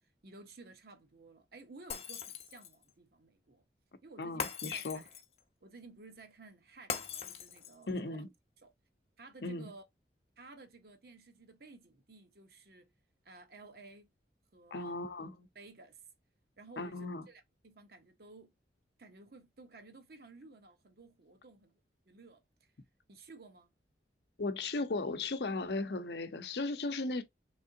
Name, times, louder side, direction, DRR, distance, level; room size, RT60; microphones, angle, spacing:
voice 1, 0.2-3.6 4.0-5.2 5.6-8.2 8.6-8.7 9.2-9.9 10.4-12.9 13.2-14.1 14.5-15.0 15.5-16.0 16.6-18.5 19.0-21.8 22.0-22.4 23.1-23.7, right 3 dB, 60° right, 0.8 m, -55 dB
Shatter, 1.9-2.8 4.4-5.4 6.9-7.9, left 6 dB, 35° left, 0.6 m, -40 dB
voice 2, 4.2-5.0 7.9-8.3 9.4-9.7 14.7-15.5 16.8-17.3 24.4-27.2, left 3 dB, 70° left, 0.7 m, -36 dB
3.6 x 3.2 x 2.6 m
head